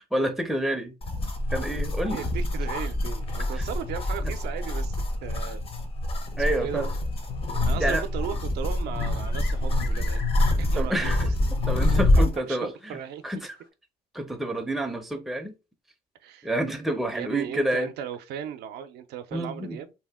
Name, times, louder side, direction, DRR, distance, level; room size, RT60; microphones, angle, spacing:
voice 1, 0.1-0.9 1.5-2.2 4.2-4.3 6.4-6.9 7.8-8.0 10.7-11.2 11.7-12.7 13.2-13.6 14.1-15.5 16.4-17.9 19.3-19.8, right 1 dB, ahead, 0.5 m, -28 dB
sound 1, 1.0-12.4, left 1 dB, 35° left, 0.7 m, -26 dB
voice 2, 2.1-5.6 6.4-6.9 7.7-10.3 10.6-11.1 12.2-13.2 16.2-16.5 17.1-19.9, right 9 dB, 75° right, 0.5 m, -36 dB
sound 2, 8.7-10.9 11.2-11.3 12.3-12.4 13.5-13.6, left 6 dB, 70° left, 0.8 m, -43 dB
2.8 x 2.1 x 3.4 m
cardioid pair, 110°, 17 cm